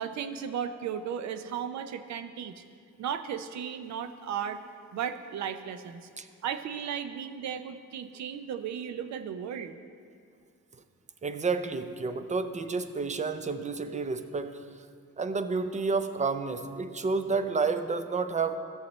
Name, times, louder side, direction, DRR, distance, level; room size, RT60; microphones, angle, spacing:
voice 1, 0.0-2.6 3.0-4.6 4.9-6.1 6.4-9.8, right 8 dB, 65° right, 10 dB, 0.6 m, -35 dB
voice 2, 11.2-14.6 15.2-18.6, right 4 dB, 25° right, 10 dB, 0.5 m, -30 dB
14.5 x 6.6 x 3.1 m, 2.2 s
cardioid pair, 90°, 30 cm